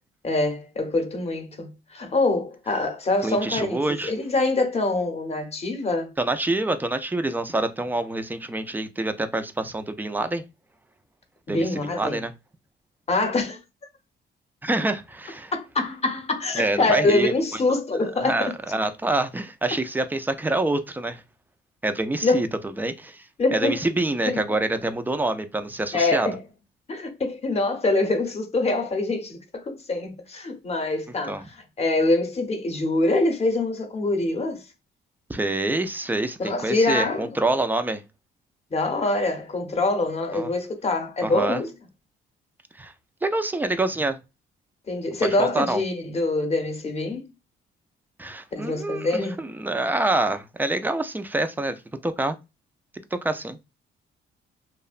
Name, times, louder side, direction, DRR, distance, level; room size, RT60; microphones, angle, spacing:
voice 1, 0.2-6.1 11.5-12.2 13.1-13.6 15.5-18.5 22.2-22.4 23.4-23.8 25.9-26.4 26.9-34.6 36.4-37.3 38.7-41.7 44.9-47.3 48.5-49.5, left 2 dB, 30° left, 0.7 m, -25 dB
voice 2, 3.2-4.1 6.2-10.4 11.5-12.3 14.6-15.5 16.6-17.8 18.2-21.2 21.8-22.5 22.8-23.3 23.5-26.3 31.3-31.4 35.3-38.0 40.3-40.5 41.2-41.6 42.8-42.9 43.2-44.2 45.2-45.8 48.2-51.7 52.0-52.4 53.1-53.6, right 2 dB, 10° right, 0.3 m, -26 dB
2.7 x 2.1 x 2.4 m
cardioid pair, 90°, 20 cm